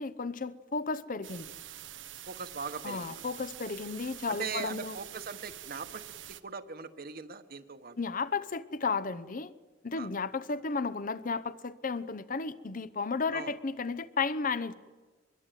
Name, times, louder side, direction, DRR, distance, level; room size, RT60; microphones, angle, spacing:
voice 1, 0.0-1.5 2.8-5.0 8.0-9.5 9.8-14.7, left 4 dB, 45° left, 0.8 m, -33 dB
sound 1, 1.2-6.4, right 12 dB, 90° right, 1.0 m, -46 dB
voice 2, 2.3-3.2 4.3-6.1 6.4-8.0 9.9-10.1 13.3-13.5, right 5 dB, 55° right, 1.3 m, -40 dB
24.0 x 22.0 x 9.1 m
head